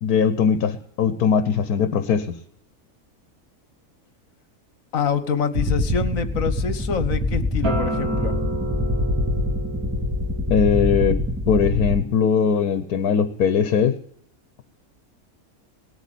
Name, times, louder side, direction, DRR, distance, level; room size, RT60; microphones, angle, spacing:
voice 1, 0.0-2.4 10.5-11.2 11.5-14.0, left 7 dB, 85° left, 11 dB, 1.3 m, -20 dB
voice 2, 4.9-8.4, left 6 dB, 65° left, 12 dB, 1.5 m, -25 dB
sound 1, 5.5-12.0, left 1 dB, 5° right, 1.5 m, -24 dB
Acoustic guitar, 7.6-12.8, right 2 dB, 70° right, 3.0 m, -32 dB
18.0 x 8.2 x 9.2 m, 0.70 s
omnidirectional pair, 1.6 m